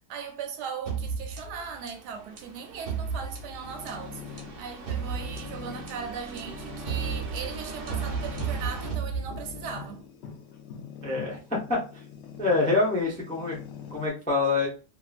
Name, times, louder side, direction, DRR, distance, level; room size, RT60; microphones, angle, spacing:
voice 1, 0.1-10.0, right 6 dB, 75° right, 1.1 m, -38 dB
sound 1, 0.9-9.8, right 5 dB, 60° right, 0.6 m, -34 dB
sound 2, 3.6-14.1, left 8 dB, 85° left, 1.2 m, -45 dB
sound 3, 5.8-12.3, left 5 dB, 65° left, 0.6 m, -45 dB
voice 2, 11.0-11.8 12.4-13.6 13.9-14.7, left 3 dB, 10° left, 0.5 m, -25 dB
2.8 x 2.6 x 2.4 m
omnidirectional pair, 1.9 m